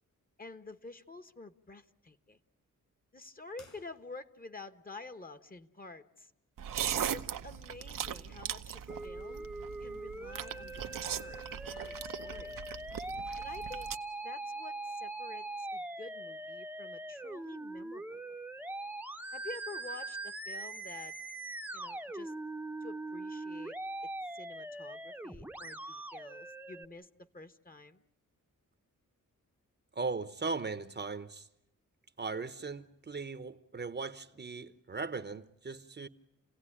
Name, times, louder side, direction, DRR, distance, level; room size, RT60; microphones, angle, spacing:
voice 1, 0.4-2.4 3.1-6.3 6.8-9.5 9.8-12.6 13.4-13.9 14.2-18.4 19.3-21.2 21.7-22.3 22.8-23.7 24.3-28.0, left 3 dB, 25° left, 1.3 m, -49 dB
sound 1, 3.5-4.6, left 4 dB, 60° left, 5.9 m, -60 dB
sound 2, 6.6-14.0, right 9 dB, 80° right, 0.9 m, -39 dB
Musical instrument, 8.9-26.8, right 2 dB, 5° right, 0.9 m, -42 dB
voice 2, 29.9-31.5 32.2-36.1, right 4 dB, 30° right, 0.9 m, -38 dB
29.0 x 17.0 x 10.0 m
cardioid pair, 90°, 32 cm